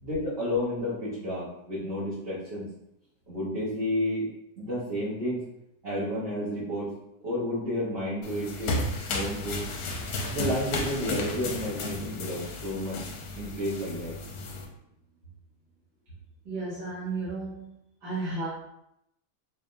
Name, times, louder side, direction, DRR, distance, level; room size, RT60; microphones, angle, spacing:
voice 1, 0.0-2.6 3.3-4.3 4.6-5.4 5.8-6.9 7.2-8.8 9.1-9.7 10.3-13.0 13.4-14.1, left 1 dB, 40° right, -10 dB, 1.2 m, -31 dB
sound 1, 8.2-14.7, left 2 dB, 70° left, 1.1 m, -33 dB
voice 2, 16.4-17.7 18.0-18.5, right 3 dB, 85° right, -13 dB, 2.2 m, -33 dB
3.9 x 3.4 x 2.6 m, 0.81 s
omnidirectional pair, 1.8 m